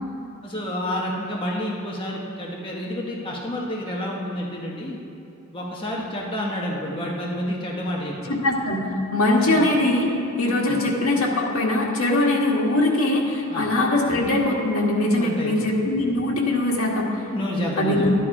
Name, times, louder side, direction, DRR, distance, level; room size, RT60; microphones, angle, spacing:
voice 1, 0.4-5.0 5.5-8.3 9.4-9.6 10.7-10.8 13.5-13.7 15.2-15.5 17.3-18.1, left 1 dB, 25° left, -3 dB, 1.3 m, -29 dB
voice 2, 8.3-10.1 10.4-17.2 17.8-18.1, left 2 dB, 70° left, -2 dB, 1.9 m, -21 dB
12.0 x 10.5 x 4.9 m, 2.6 s
head